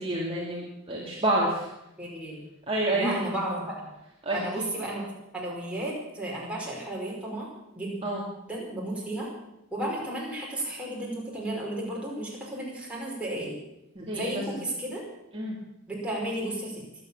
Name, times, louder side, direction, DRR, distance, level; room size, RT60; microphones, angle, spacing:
voice 1, 0.0-1.7 2.7-3.2 4.2-4.4 8.0-8.2 14.0-14.6 15.3-15.6, right 1 dB, 25° right, -4 dB, 2.4 m, -28 dB
voice 2, 2.0-2.4 2.9-3.9 4.3-7.5 7.7-8.0 8.5-9.3 9.7-13.6 14.1-15.0 15.9-16.8, right 1 dB, 5° right, -5 dB, 5.2 m, -33 dB
23.5 x 8.7 x 7.2 m, 0.86 s
head